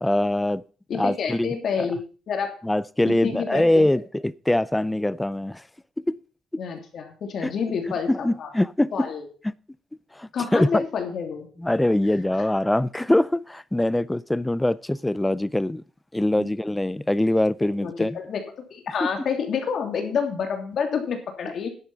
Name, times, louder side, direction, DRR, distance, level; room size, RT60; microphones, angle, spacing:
voice 1, 0.0-0.6 0.9-1.9 2.6-5.6 6.1-6.2 7.4-7.5 8.1-9.1 9.4-9.5 10.1-10.8 11.6-15.8 16.1-18.2 19.0-19.1, left 1 dB, 10° left, 0.5 m, -23 dB
voice 2, 0.9-2.0 2.3-2.5 3.0-3.8 6.6-8.5 8.9-9.2 10.3-11.5 16.4-16.5 17.8-18.4 18.7-21.7, left 6 dB, 60° left, 2.9 m, -28 dB
11.0 x 8.5 x 5.7 m
cardioid pair, 90°, 0 cm